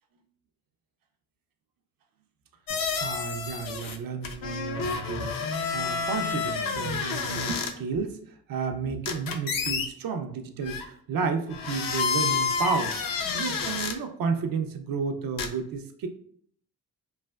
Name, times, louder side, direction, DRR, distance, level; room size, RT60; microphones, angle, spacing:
sound 1, 2.7-4.0 4.2-7.7 9.1-9.9 10.6-10.9 11.5-13.9 15.4-15.5, left 5 dB, 55° left, 0.6 m, -29 dB
voice 1, 2.7-8.2 8.5-13.0 13.3-16.1, right 5 dB, 55° right, 6 dB, 0.5 m, -32 dB
3.2 x 2.1 x 2.2 m, 0.62 s
supercardioid pair, 45°, 41 cm